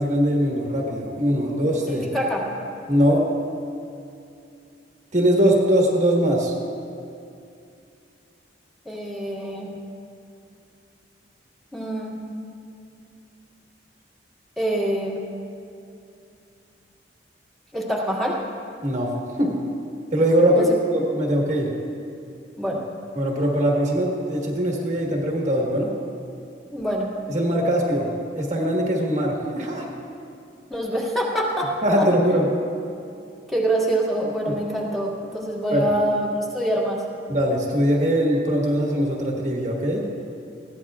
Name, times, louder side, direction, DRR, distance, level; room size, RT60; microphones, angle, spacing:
voice 1, 0.0-2.0 2.9-3.3 5.1-6.5 18.8-19.5 20.1-21.7 23.1-25.9 27.3-28.1 28.3-29.9 31.8-32.5 34.4-34.6 35.7-35.8 37.3-40.0, equal, 40° right, -2 dB, 1.5 m, -21 dB
voice 2, 1.9-2.4 8.9-9.7 11.7-12.1 14.6-15.2 17.7-18.4 20.5-20.6 22.6-22.8 26.7-27.1 30.7-31.7 32.0-32.1 33.5-37.0, right 1 dB, ahead, -5 dB, 2.0 m, -25 dB
20.5 x 15.5 x 2.4 m, 2.6 s
head